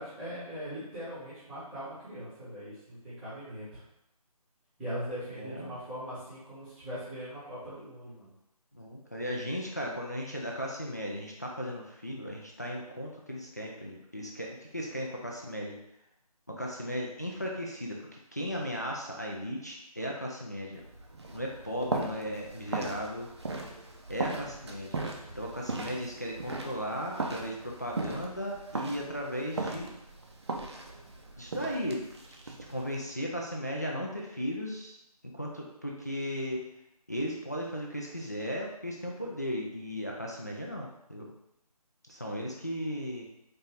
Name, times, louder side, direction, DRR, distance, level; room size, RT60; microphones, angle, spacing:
voice 1, 0.0-3.8 4.8-8.3, equal, ahead, -14 dB, 0.8 m, -40 dB
voice 2, 5.4-5.7 8.7-15.8 16.5-20.8 21.3-23.3 24.1-25.0 25.3-29.9 31.4-32.0 32.4-35.0 35.3-36.6 37.1-41.3 42.1-43.2, equal, 25° left, -2 dB, 0.3 m, -36 dB
sound 1, 20.7-33.0, right 3 dB, 45° right, 0.5 m, -38 dB
4.2 x 2.6 x 3.3 m, 0.81 s
figure-of-eight pair, 155°, 20 cm